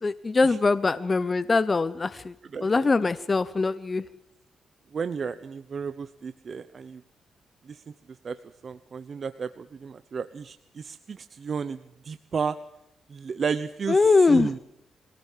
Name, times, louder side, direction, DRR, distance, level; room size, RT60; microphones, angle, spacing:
voice 1, 0.0-2.3 2.6-4.0 13.9-14.5, left 3 dB, 25° left, 14 dB, 0.8 m, -22 dB
voice 2, 4.9-7.0 7.7-7.8 8.2-8.4 8.6-11.8 12.0-12.6 13.1-14.0 14.3-14.6, right 6 dB, 45° right, 11 dB, 0.8 m, -32 dB
23.5 x 17.5 x 7.4 m, 0.78 s
cardioid pair, 115°, 0 cm